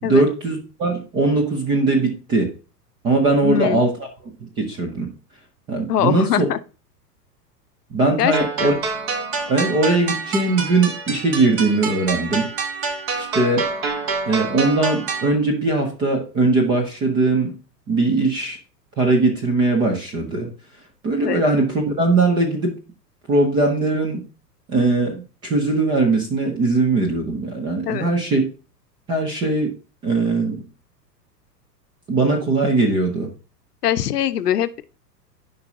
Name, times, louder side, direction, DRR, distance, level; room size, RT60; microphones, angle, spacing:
voice 1, 0.0-2.5 3.0-3.9 4.4-5.1 5.7-6.5 7.9-8.7 9.5-12.5 13.2-13.7 14.3-17.5 17.9-18.6 19.0-20.5 21.0-22.8 23.3-24.2 24.7-28.4 29.1-29.7 30.0-30.7 32.1-33.3, right 2 dB, 10° right, 0.4 m, -20 dB
voice 2, 3.4-3.8 5.9-6.6 8.2-8.3 8.6-8.7 21.2-21.4 27.9-28.1 33.8-34.8, left 10 dB, 70° left, 0.7 m, -22 dB
sound 1, 8.3-15.3, right 4 dB, 35° right, 1.3 m, -27 dB
10.5 x 5.1 x 2.7 m
figure-of-eight pair, 100°, 50 cm